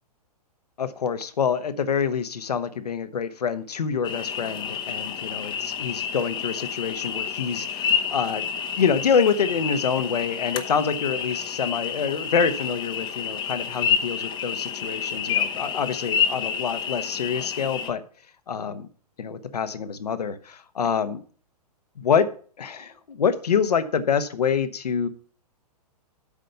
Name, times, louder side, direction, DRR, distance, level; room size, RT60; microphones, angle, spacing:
voice 1, 0.8-8.4 8.8-18.0 18.5-18.9 19.2-21.2 22.0-22.3 22.6-25.1, left 6 dB, 75° left, 11 dB, 1.1 m, -26 dB
sound 1, 4.0-17.9, left 7 dB, 20° left, 0.9 m, -29 dB
8.5 x 5.2 x 6.8 m, 0.44 s
hypercardioid pair, 115°, 20 cm